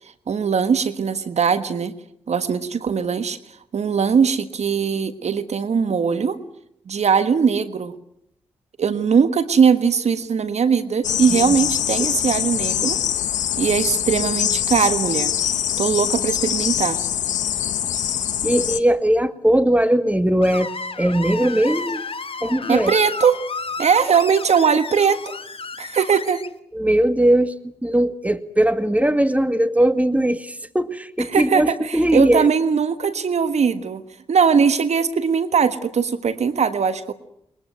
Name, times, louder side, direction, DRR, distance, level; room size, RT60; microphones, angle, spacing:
voice 1, 0.3-1.9 2.3-3.4 3.7-6.4 6.9-7.9 8.8-13.0 13.6-15.3 15.8-17.0 22.7-23.4 23.8-25.4 25.8-26.4 31.3-34.0 34.3-37.1, right 6 dB, 60° right, 11 dB, 1.4 m, -20 dB
sound 1, 11.0-18.8, left 10 dB, 80° left, 1.1 m, -23 dB
voice 2, 18.4-20.7 21.0-22.0 22.4-22.9 26.7-27.5 27.8-32.5, right 1 dB, 10° right, 11 dB, 2.2 m, -19 dB
Screech, 20.4-26.5, left 4 dB, 50° left, 1.7 m, -32 dB
22.0 x 21.5 x 9.3 m, 0.75 s
supercardioid pair, 40°, 12 cm